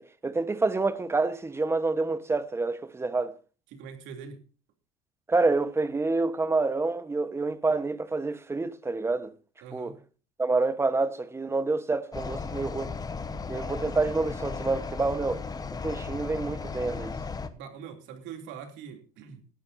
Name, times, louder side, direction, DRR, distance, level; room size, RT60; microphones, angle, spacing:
voice 1, 0.0-3.3 5.3-9.3 9.7-9.9 10.4-12.9 13.5-15.4 15.7-17.2, right 3 dB, 15° right, 1.1 m, -28 dB
voice 2, 3.7-4.4 9.6-10.0 17.5-19.5, right 7 dB, 70° right, 2.9 m, -43 dB
sound 1, 12.1-17.5, left 4 dB, 20° left, 1.1 m, -36 dB
19.0 x 11.5 x 2.7 m
cardioid pair, 120°, 19 cm